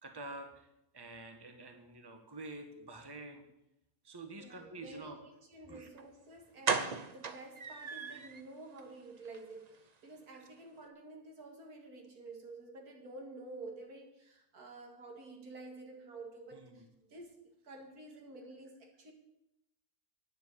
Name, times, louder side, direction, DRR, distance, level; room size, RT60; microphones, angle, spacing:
voice 1, 0.0-0.7 0.9-3.4 4.0-5.2 5.7-5.9 16.5-16.8, right 2 dB, 15° right, 5 dB, 1.3 m, -48 dB
voice 2, 4.4-19.1, right 2 dB, 85° right, 2 dB, 2.5 m, -50 dB
sound 1, 6.0-6.1 6.6-8.4 8.8-8.9 9.2-9.4 9.7-9.8, right 5 dB, 40° right, 0.6 m, -35 dB
9.6 x 7.4 x 8.6 m, 0.86 s
omnidirectional pair, 1.5 m